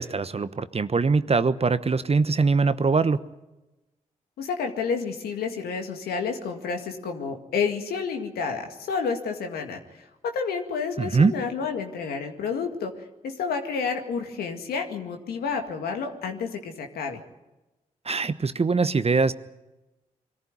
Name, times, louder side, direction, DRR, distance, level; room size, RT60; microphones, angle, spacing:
voice 1, 0.0-3.2 11.0-11.3 18.0-19.3, right 4 dB, 40° right, 13 dB, 1.1 m, -22 dB
voice 2, 4.4-9.8 10.2-12.9 13.2-17.2, left 5 dB, 80° left, 4 dB, 2.1 m, -30 dB
22.5 x 14.5 x 9.8 m, 1.0 s
supercardioid pair, 40°, 16 cm